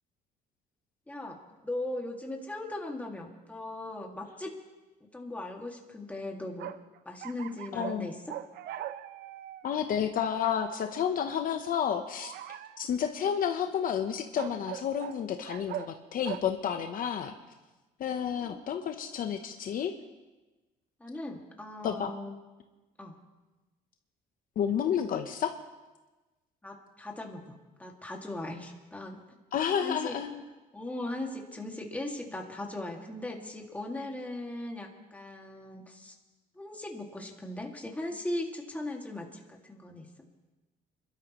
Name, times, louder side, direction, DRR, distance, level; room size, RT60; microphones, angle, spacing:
voice 1, 1.1-4.5 5.1-6.7 7.1-8.1 18.4-18.6 21.0-22.3 23.0-23.2 26.6-29.2 29.8-30.2 30.7-36.1 36.6-40.1, left 1 dB, 10° left, 1 dB, 2.2 m, -38 dB
sound 1, 6.6-8.0 8.3-9.7 12.2-12.8 14.4-15.2 15.5-15.9 16.2-16.4, right 12 dB, 70° right, 0.6 m, -40 dB
voice 2, 7.7-8.1 9.6-12.3 12.8-17.3 18.0-19.9 21.8-22.1 24.6-25.5 29.5-30.4, left 8 dB, 55° left, 6 dB, 0.9 m, -30 dB
27.5 x 12.5 x 3.1 m, 1.2 s
cardioid pair, 110°, 17 cm